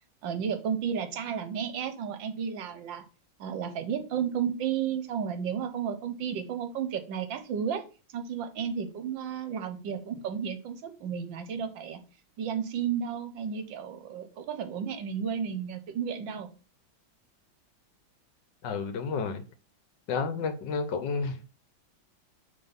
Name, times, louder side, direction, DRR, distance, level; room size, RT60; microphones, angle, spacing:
voice 1, 0.2-3.0 3.4-7.8 8.1-12.0 12.4-16.5, right 7 dB, 75° right, 1.6 m, -32 dB
voice 2, 18.6-19.4 20.1-21.4, left 5 dB, 70° left, 1.5 m, -31 dB
6.1 x 3.6 x 5.3 m
omnidirectional pair, 2.1 m